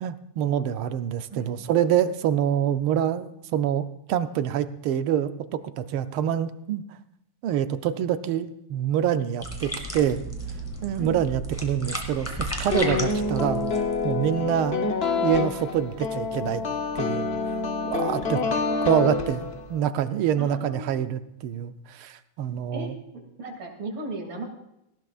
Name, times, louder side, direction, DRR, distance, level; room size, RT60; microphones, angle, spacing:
voice 1, 0.0-6.8 7.4-10.2 10.8-13.7 14.0-14.8 15.2-16.6 17.0-17.3 17.8-18.4 18.8-22.9, right 10 dB, 85° right, 10 dB, 1.6 m, -26 dB
sound 1, 9.4-14.4, right 1 dB, 5° left, 2.0 m, -34 dB
sound 2, 12.7-19.8, left 4 dB, 40° left, 0.9 m, -27 dB
voice 2, 20.4-21.1 22.7-22.9 23.4-24.5, right 2 dB, 60° right, 2 dB, 3.3 m, -35 dB
18.0 x 16.0 x 2.4 m, 0.84 s
omnidirectional pair, 2.3 m